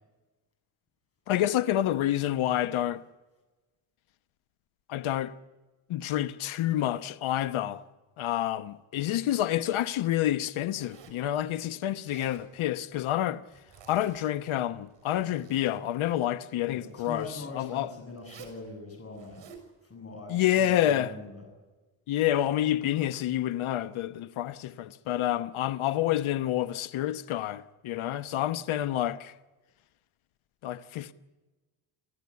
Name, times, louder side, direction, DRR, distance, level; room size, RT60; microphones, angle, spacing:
voice 1, 1.3-3.0 4.9-5.3 5.9-7.8 8.2-13.4 13.9-17.3 17.5-17.9 20.3-21.1 22.1-29.3 30.6-31.1, left 12 dB, 80° left, 1.1 m, -28 dB
Zipper (clothing), 10.7-11.3 11.9-12.5 13.5-14.4 14.8-15.8 16.9-17.5 18.2-18.6 19.1-19.7, right 7 dB, 65° right, 6.3 m, -52 dB
voice 2, 16.7-19.4 19.8-21.5, left 2 dB, 30° left, 7.3 m, -42 dB
28.0 x 15.5 x 9.6 m
cardioid pair, 115°, 47 cm